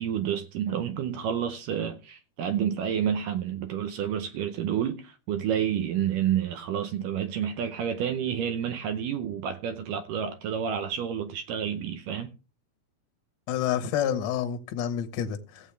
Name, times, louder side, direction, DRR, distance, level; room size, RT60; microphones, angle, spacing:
voice 1, 0.0-12.3, right 9 dB, 75° right, 2.1 m, -29 dB
voice 2, 13.5-15.7, left 9 dB, 65° left, 1.8 m, -29 dB
16.5 x 7.8 x 3.3 m
omnidirectional pair, 4.3 m